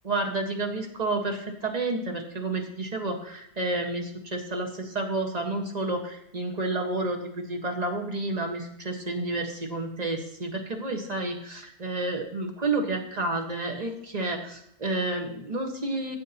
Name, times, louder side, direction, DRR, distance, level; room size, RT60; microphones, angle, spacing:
voice 1, 0.0-16.2, right 2 dB, 25° right, 3 dB, 1.4 m, -30 dB
14.5 x 8.6 x 2.9 m, 0.74 s
omnidirectional pair, 1.6 m